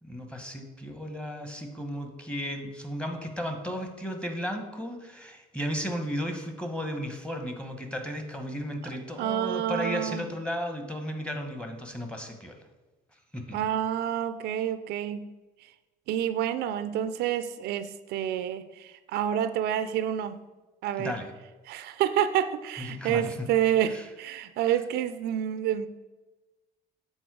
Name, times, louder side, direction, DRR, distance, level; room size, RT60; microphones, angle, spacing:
voice 1, 0.0-12.5 13.3-13.6 21.0-21.3 22.9-23.5 23.9-24.1, equal, 5° left, 4 dB, 0.9 m, -34 dB
voice 2, 9.2-10.2 13.5-15.3 16.1-20.4 20.8-21.1 21.7-25.9, right 10 dB, 75° right, 12 dB, 0.4 m, -28 dB
7.1 x 4.0 x 4.7 m, 1.1 s
cardioid pair, 110°, 17 cm